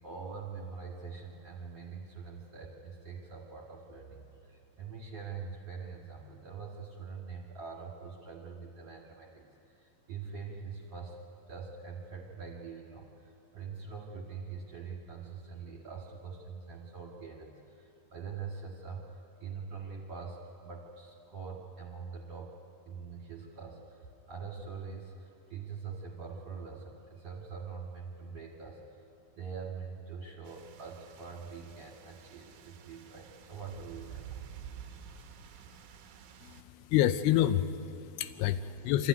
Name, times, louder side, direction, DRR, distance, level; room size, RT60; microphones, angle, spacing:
voice 1, 0.0-11.2 11.5-22.5 22.9-28.8 29.4-34.4 38.3-38.9, right 5 dB, 45° right, -3 dB, 2.5 m, -44 dB
sound 1, 30.5-36.6, right 8 dB, 70° right, 1.9 m, -50 dB
voice 2, 36.4-39.1, left 12 dB, 80° left, 11 dB, 2.4 m, -28 dB
25.5 x 14.0 x 9.4 m, 2.7 s
omnidirectional pair, 4.9 m